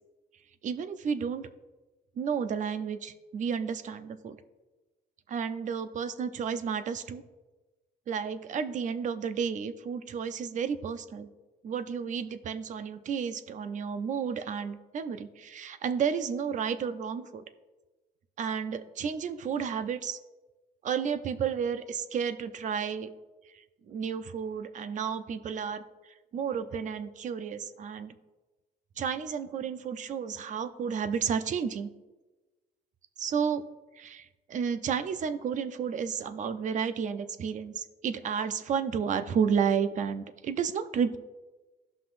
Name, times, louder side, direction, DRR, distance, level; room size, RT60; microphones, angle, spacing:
voice 1, 0.6-1.5 2.2-4.4 5.3-7.2 8.1-11.3 11.6-17.4 18.4-20.2 20.8-23.1 23.9-25.8 26.3-28.1 29.0-31.9 33.2-33.6 34.0-41.2, right 7 dB, 45° right, 10 dB, 0.7 m, -32 dB
16.0 x 5.7 x 2.6 m, 1.2 s
cardioid pair, 110°, 17 cm